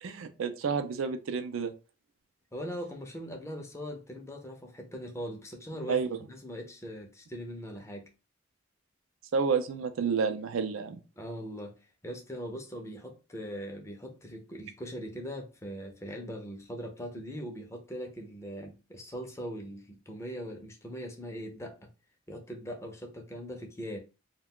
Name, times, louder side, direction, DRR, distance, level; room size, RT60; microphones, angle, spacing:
voice 1, 0.0-1.7 5.9-6.2 9.3-11.0, right 5 dB, 85° right, 0.4 m, -30 dB
voice 2, 2.5-8.1 11.2-11.8 12.0-21.8 22.3-24.0, equal, 15° left, 0.5 m, -40 dB
2.3 x 2.2 x 3.5 m
head